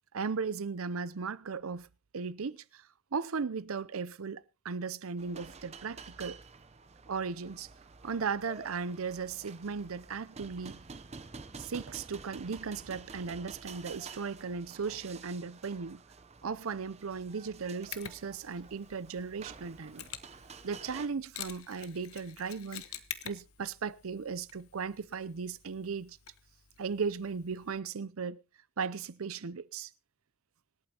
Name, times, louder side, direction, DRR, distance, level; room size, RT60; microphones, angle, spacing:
voice 1, 0.1-1.9 2.1-2.8 3.1-6.4 7.1-7.7 8.0-10.8 11.6-16.0 16.4-20.0 20.6-22.8 23.2-26.2 26.8-28.4 28.8-29.9, right 5 dB, 75° right, 0.6 m, -36 dB
sound 1, 5.2-21.1, right 4 dB, 30° right, 0.7 m, -50 dB
Mechanisms, 17.9-27.8, left 11 dB, 90° left, 1.1 m, -48 dB
25.5 x 8.7 x 2.9 m
head